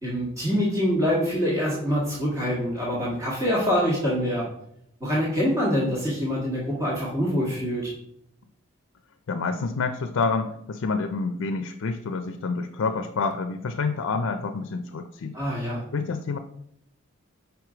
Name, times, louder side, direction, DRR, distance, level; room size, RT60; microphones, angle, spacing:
voice 1, 0.0-4.4 5.0-7.9 15.3-15.8, equal, 15° right, -7 dB, 1.5 m, -25 dB
voice 2, 9.3-15.4 15.9-16.4, left 4 dB, 75° left, 7 dB, 0.4 m, -28 dB
5.0 x 4.6 x 4.9 m, 0.74 s
head